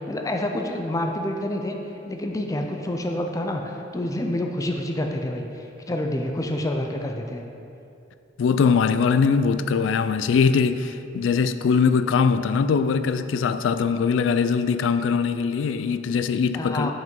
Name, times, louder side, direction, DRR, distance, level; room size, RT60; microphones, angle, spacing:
voice 1, 0.0-1.8 2.1-7.4 16.5-16.9, left 1 dB, 20° left, 3 dB, 0.4 m, -28 dB
voice 2, 8.4-16.9, left 5 dB, 90° left, 12 dB, 0.3 m, -21 dB
5.8 x 5.1 x 5.3 m, 2.7 s
head